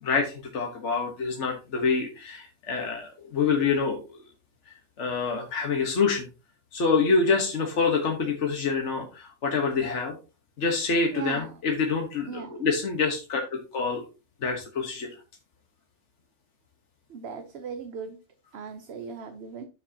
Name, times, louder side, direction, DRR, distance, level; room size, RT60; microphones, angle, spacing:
voice 1, 0.0-4.2 4.7-6.3 6.7-10.2 10.6-14.0 14.4-15.1, left 4 dB, 75° left, 3 dB, 1.6 m, -26 dB
voice 2, 11.1-11.5 12.3-12.7 17.1-18.2 18.5-19.6, right 6 dB, 65° right, 8 dB, 1.1 m, -38 dB
9.7 x 7.3 x 2.8 m, 0.31 s
omnidirectional pair, 1.2 m